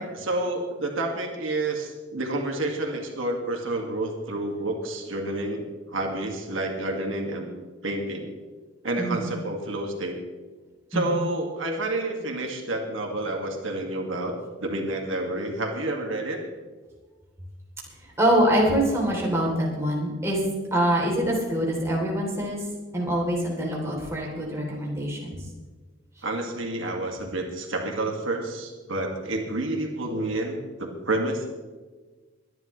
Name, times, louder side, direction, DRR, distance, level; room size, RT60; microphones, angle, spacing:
voice 1, 0.0-7.5 7.8-8.3 8.8-10.2 10.9-16.4 26.2-31.5, right 2 dB, 80° right, 2 dB, 2.0 m, -29 dB
voice 2, 18.2-20.4 20.7-22.6 22.9-25.4, right 1 dB, 15° right, -3 dB, 3.3 m, -24 dB
22.0 x 10.5 x 3.2 m, 1.3 s
head